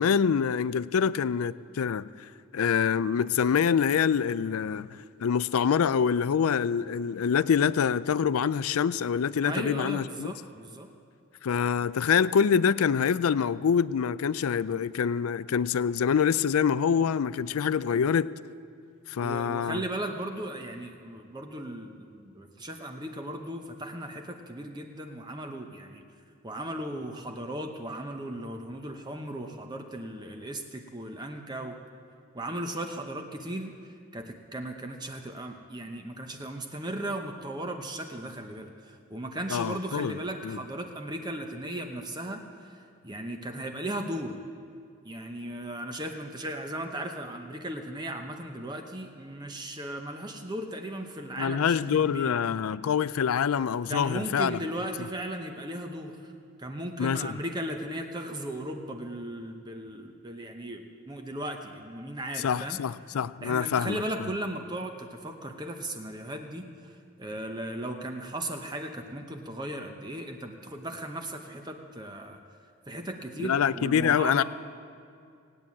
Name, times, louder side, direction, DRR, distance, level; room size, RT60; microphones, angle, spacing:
voice 1, 0.0-2.1 2.5-4.9 5.2-10.3 11.4-18.3 19.1-19.8 39.5-40.1 40.4-40.6 51.4-54.6 57.0-57.4 62.4-64.0 73.4-74.4, left 7 dB, 85° left, 0.4 m, -25 dB
voice 2, 9.4-10.9 19.2-26.0 26.4-31.8 32.3-33.7 34.1-44.4 45.0-52.3 53.9-56.3 56.6-62.8 63.4-66.9 67.2-72.4 72.9-74.4, right 1 dB, 20° right, 0.8 m, -36 dB
18.0 x 9.2 x 8.5 m
head